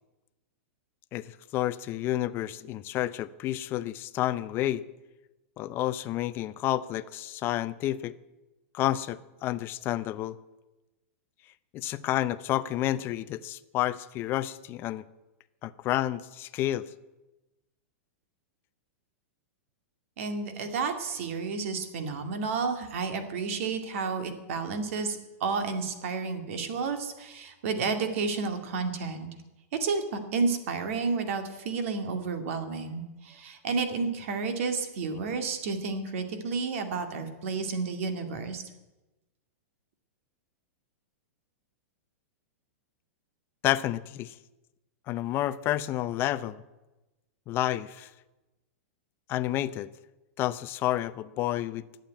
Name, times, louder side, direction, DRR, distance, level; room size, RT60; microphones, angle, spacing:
voice 1, 1.1-4.8 5.6-8.2 8.7-10.4 11.7-15.0 15.6-16.9 43.6-44.3 45.1-46.6 47.5-48.1 49.3-49.9 50.4-51.8, left 14 dB, 30° left, 14 dB, 0.6 m, -30 dB
voice 2, 20.2-29.3 29.7-38.6, right 4 dB, 60° right, 7 dB, 2.2 m, -31 dB
11.5 x 8.9 x 9.3 m, 1.0 s
hypercardioid pair, 150°, 8 cm